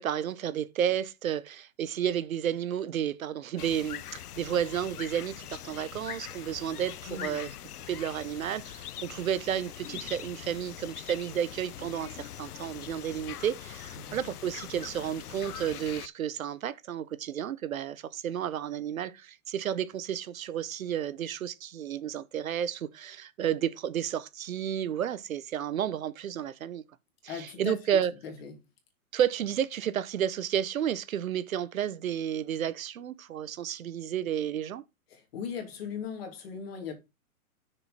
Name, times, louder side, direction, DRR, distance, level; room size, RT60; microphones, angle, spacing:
voice 1, 0.0-7.5 7.9-26.8 27.2-28.1 29.1-34.8, right 9 dB, 65° right, 1.0 m, -32 dB
sound 1, 3.6-16.1, left 11 dB, 85° left, 0.8 m, -42 dB
voice 2, 7.0-7.5 13.9-14.2 27.3-28.5 35.1-36.9, left 7 dB, 40° left, 2.9 m, -39 dB
6.6 x 6.5 x 4.1 m
hypercardioid pair, 165°, 44 cm